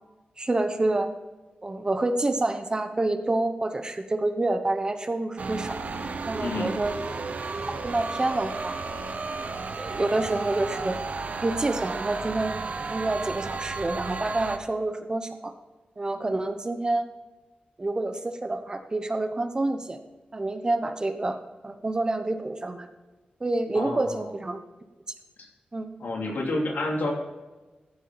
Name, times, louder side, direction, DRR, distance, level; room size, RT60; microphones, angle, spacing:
voice 1, 0.4-1.1 1.6-5.8 6.3-7.0 7.8-8.8 9.8-11.0 11.4-12.5 12.9-15.5 16.0-17.1 17.8-20.0 20.3-21.4 21.6-22.9 23.4-24.6 25.7-25.9, right 2 dB, 25° right, 8 dB, 0.9 m, -27 dB
sound 1, 5.4-14.6, right 4 dB, 55° right, 1.0 m, -33 dB
voice 2, 6.4-6.7 23.7-24.3 25.4-25.5 26.0-27.1, left 2 dB, 90° left, -1 dB, 3.0 m, -29 dB
14.0 x 7.3 x 4.0 m, 1.2 s
wide cardioid pair, 155°, 3 cm